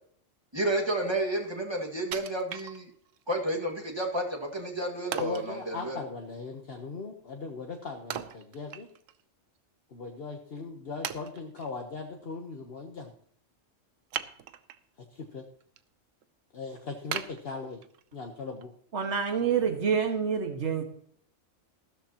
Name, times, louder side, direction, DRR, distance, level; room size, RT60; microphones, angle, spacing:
voice 1, 0.5-2.8 3.3-6.0, right 1 dB, 20° right, 0 dB, 2.0 m, -31 dB
Wood, 2.1-3.2 3.7-3.8 5.1-5.5 8.1-9.2 9.6-9.7 10.3-10.4 11.0-11.7 14.1-14.9 15.3-15.8 16.2-16.3 17.1-18.1 18.6-18.7, right 10 dB, 90° right, 1.1 m, -38 dB
voice 2, 5.2-8.9 9.9-13.1 15.1-15.4 16.5-17.8 18.1-18.7, left 4 dB, 50° left, 2 dB, 1.3 m, -39 dB
voice 3, 18.9-20.8, right 7 dB, 65° right, 4 dB, 2.0 m, -27 dB
15.0 x 13.0 x 2.9 m, 0.62 s
omnidirectional pair, 1.3 m